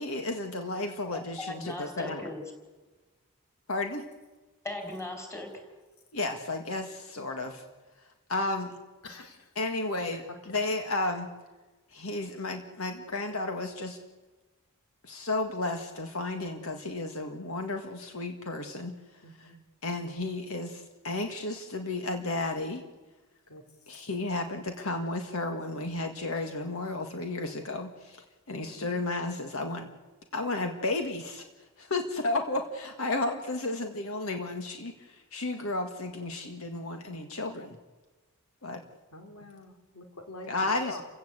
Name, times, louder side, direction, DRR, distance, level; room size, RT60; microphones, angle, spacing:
voice 1, 0.0-2.2 3.7-4.1 6.1-7.6 8.3-8.8 9.6-11.3 11.9-14.0 15.0-18.9 19.4-19.5 19.8-22.8 23.9-29.9 30.3-31.5 31.8-37.8 38.6-38.8 40.5-41.0, left 2 dB, 75° left, 5 dB, 1.9 m, -33 dB
voice 2, 1.1-2.4 4.6-5.7, left 2 dB, 10° left, 4 dB, 4.9 m, -38 dB
voice 3, 9.0-9.5 19.2-19.6 23.5-23.6 28.6-28.8 39.1-40.5 40.8-41.0, left 2 dB, 90° left, 4 dB, 3.4 m, -46 dB
29.5 x 16.5 x 8.2 m, 1.2 s
head